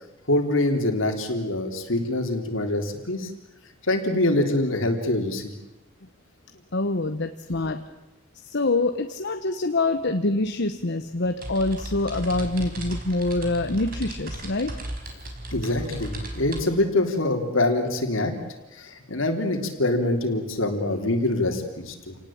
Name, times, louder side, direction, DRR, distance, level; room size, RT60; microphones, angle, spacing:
voice 1, 0.3-3.3 3.9-5.5 15.5-18.3 18.7-22.2, left 2 dB, 75° left, 5 dB, 3.6 m, -24 dB
voice 2, 6.7-7.9 8.4-14.8, left 2 dB, 60° left, 7 dB, 1.1 m, -25 dB
sound 1, 10.0-10.1 10.4-16.6, right 1 dB, 50° right, 4.6 m, -36 dB
28.5 x 18.5 x 8.8 m, 1.0 s
head